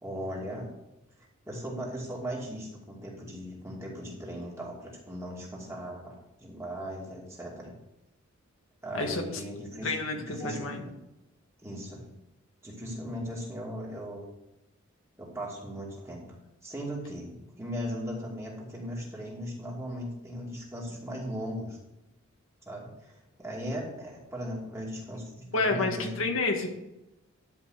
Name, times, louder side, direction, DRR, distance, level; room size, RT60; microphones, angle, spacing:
voice 1, 0.0-0.8 1.5-7.7 8.8-10.9 11.6-12.1 12.6-14.3 15.2-16.3 16.6-21.8 22.7-26.3, equal, 15° right, -3 dB, 2.5 m, -38 dB
voice 2, 8.9-9.2 9.8-10.8 25.5-26.7, left 3 dB, 70° left, 3 dB, 1.6 m, -29 dB
11.0 x 5.3 x 6.5 m, 0.92 s
head